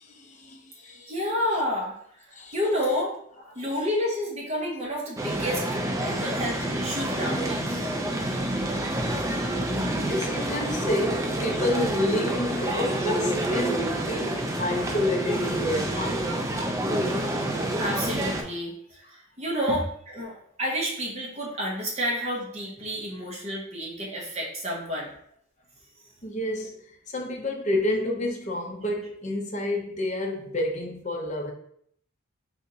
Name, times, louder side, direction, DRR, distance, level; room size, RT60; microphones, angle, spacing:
voice 1, 0.0-1.1 2.3-2.6 6.1-6.2 8.1-17.4 19.7-19.8 26.2-31.5, left 1 dB, 35° left, 0.6 m, -30 dB
voice 2, 0.8-8.0 9.6-9.7 17.2-19.8 20.1-20.3 20.6-25.1, equal, 30° right, 1.0 m, -30 dB
sound 1, 5.2-18.4, right 1 dB, 15° right, 0.3 m, -28 dB
3.4 x 2.9 x 3.9 m
head